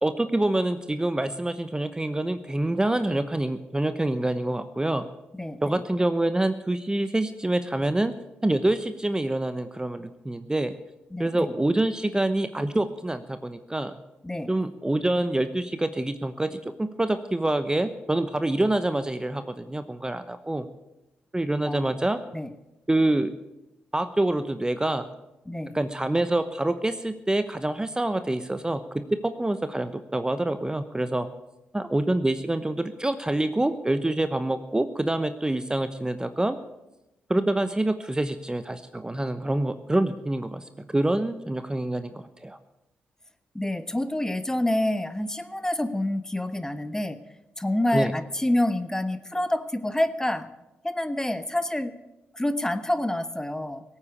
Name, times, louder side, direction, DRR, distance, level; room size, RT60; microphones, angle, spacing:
voice 1, 0.0-5.0 5.6-8.1 8.4-10.8 11.2-14.0 14.5-20.6 21.3-22.2 22.9-23.3 23.9-25.1 25.7-31.3 31.7-36.6 37.3-40.6 40.9-42.6 47.9-48.1, right 1 dB, 15° right, 10 dB, 1.0 m, -26 dB
voice 2, 5.3-5.8 11.1-11.5 14.2-14.5 21.6-22.0 22.3-22.5 25.5-25.7 43.5-47.2 47.6-50.5 50.8-51.9 52.3-53.8, left 1 dB, 10° left, 12 dB, 1.3 m, -27 dB
17.5 x 8.8 x 8.3 m, 0.96 s
hypercardioid pair, 45°, 5 cm